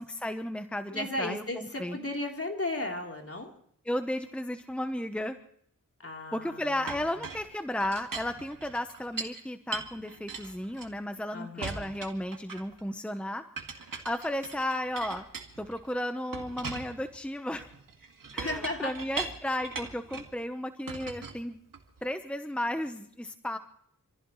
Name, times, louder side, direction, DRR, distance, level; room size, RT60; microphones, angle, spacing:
voice 1, 0.0-2.0 3.9-5.4 6.3-15.2 15.6-17.7 18.3-21.6 22.0-23.6, left 1 dB, 5° left, 8 dB, 1.0 m, -34 dB
voice 2, 0.9-3.5 6.0-7.2 11.3-11.9 18.4-18.9, left 2 dB, 45° left, 1 dB, 3.6 m, -35 dB
Chink clink, 6.9-9.4 9.7-11.2 11.6-12.8 13.6-15.9 16.3-20.4 20.9-22.0, right 4 dB, 85° right, 2.1 m, -40 dB
27.0 x 15.0 x 3.2 m, 0.66 s
wide cardioid pair, 60°, 32 cm